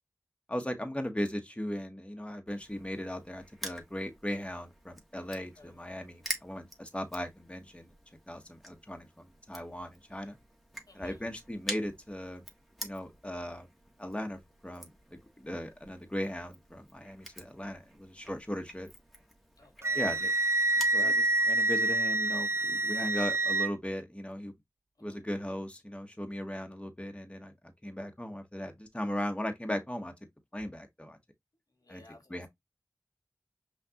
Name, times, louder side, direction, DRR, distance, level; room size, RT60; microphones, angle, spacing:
voice 1, 0.5-7.9 8.3-10.4 10.9-12.4 12.8-13.7 14.0-18.9 19.9-20.3 20.9-24.5 25.0-27.5 27.8-30.1 30.5-31.2 31.9-32.0 32.3-32.5, equal, 15° left, 1.1 m, -38 dB
Crushing, 2.5-21.0, equal, ahead, 1.4 m, -47 dB
voice 2, 5.3-5.8 10.9-11.2 19.6-20.0 25.0-25.2 31.7-32.5, left 2 dB, 80° left, 1.6 m, -58 dB
Wind instrument woodwind instrument, 19.8-23.7, right 2 dB, 45° right, 0.4 m, -27 dB
5.8 x 2.5 x 2.8 m
wide cardioid pair, 40°, 6 cm